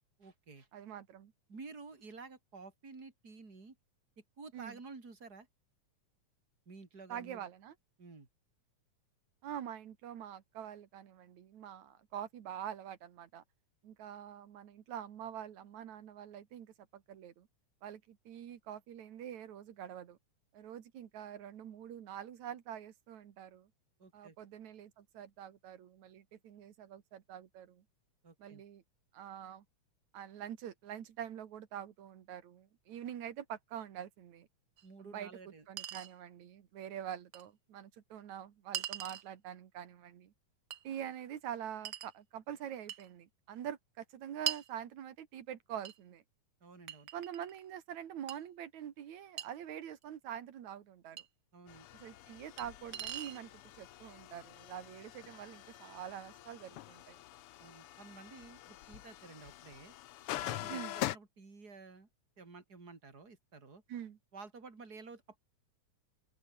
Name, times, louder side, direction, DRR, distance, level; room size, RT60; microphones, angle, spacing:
voice 1, 0.2-0.7 1.5-3.8 4.4-5.5 6.7-7.5 8.0-8.3 24.0-24.4 28.2-28.6 34.8-35.7 46.6-47.1 51.5-51.9 57.6-59.9 60.4-62.1 62.4-63.8 64.3-65.4, right 4 dB, 30° right, 4.7 m, -52 dB
voice 2, 0.7-1.3 4.5-4.8 7.1-7.7 9.4-13.4 13.8-17.5 17.8-20.2 20.5-23.7 24.1-27.8 28.4-28.8 29.1-29.6 30.1-34.5 35.0-40.3 40.8-46.2 47.1-51.2 51.9-53.5 53.8-57.2 60.7-61.0 63.9-64.2, right 10 dB, 70° right, 3.0 m, -45 dB
Chink clink, 34.8-34.9 35.8-36.1 37.3-37.4 38.7-39.3 40.7-40.8 41.8-42.1 42.9-43.1 44.5-44.7 45.8-46.0 46.9-47.6 48.3-48.4 49.4-49.5 51.2-51.3 52.6-52.7 52.9-53.4, right 10 dB, 90° right, 0.9 m, -40 dB
sound 1, 51.7-61.2, left 14 dB, 75° left, 1.3 m, -45 dB
open air
omnidirectional pair, 3.4 m